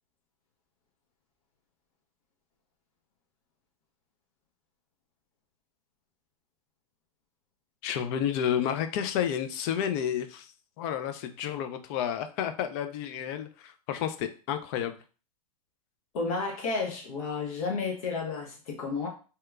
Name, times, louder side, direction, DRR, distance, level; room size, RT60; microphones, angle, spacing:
voice 1, 7.8-15.0, left 9 dB, 45° left, 8 dB, 0.4 m, -31 dB
voice 2, 16.1-19.1, left 4 dB, 65° left, 0 dB, 0.8 m, -32 dB
2.8 x 2.2 x 2.3 m, 0.37 s
hypercardioid pair, 115°, 19 cm